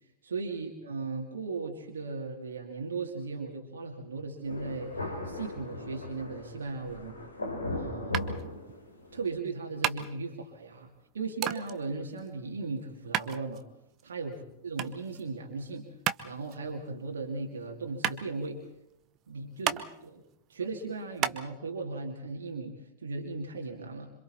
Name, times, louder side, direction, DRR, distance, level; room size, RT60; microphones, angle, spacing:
voice 1, 0.2-7.2 7.7-8.3 9.1-13.6 14.0-14.4 14.6-15.9 16.2-18.6 19.3-20.2 20.5-24.1, right 3 dB, 70° right, 2 dB, 2.4 m, -37 dB
Thunder, 4.5-9.3, left 2 dB, 80° left, 3.9 m, -38 dB
sound 1, 8.1-21.4, right 11 dB, 35° right, 1.1 m, -36 dB
27.0 x 26.0 x 4.3 m, 0.81 s
figure-of-eight pair, 90°, 0 cm